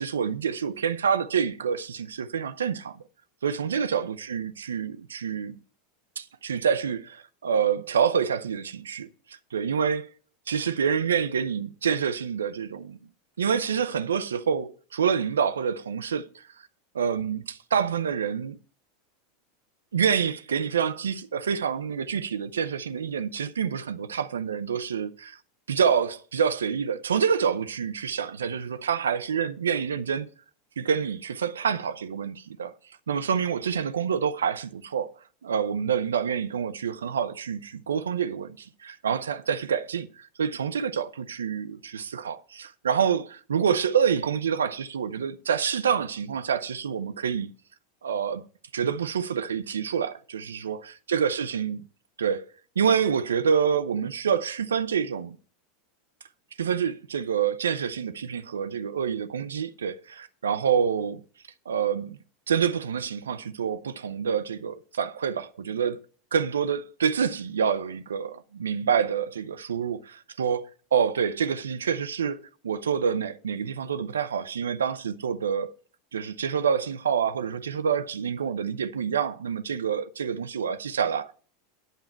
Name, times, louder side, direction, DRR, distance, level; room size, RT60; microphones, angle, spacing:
voice 1, 0.0-3.0 3.4-5.6 6.2-10.1 10.5-13.0 13.4-16.4 16.9-18.6 19.9-25.4 25.7-30.3 30.8-32.7 33.1-35.1 35.4-47.5 48.0-48.4 48.7-51.8 52.2-52.5 52.8-55.4 56.6-61.2 61.7-62.2 62.5-66.0 66.3-75.7 76.1-81.3, right 7 dB, 80° right, 0.6 m, -27 dB
9.1 x 9.1 x 4.5 m
hypercardioid pair, 90°, 0 cm